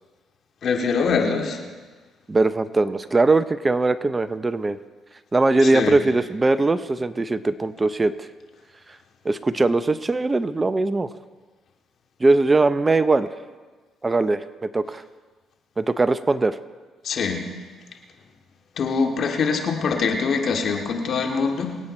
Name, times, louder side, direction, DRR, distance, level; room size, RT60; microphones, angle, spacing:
voice 1, 0.6-1.6 5.6-6.0 17.0-17.4 18.8-21.8, left 5 dB, 60° left, 3 dB, 2.2 m, -23 dB
voice 2, 2.3-4.8 5.3-8.3 9.2-11.1 12.2-13.3 14.0-15.0 15.8-16.6, right 3 dB, 25° right, 13 dB, 0.7 m, -20 dB
24.5 x 8.8 x 4.4 m, 1.4 s
supercardioid pair, 65°, 0 cm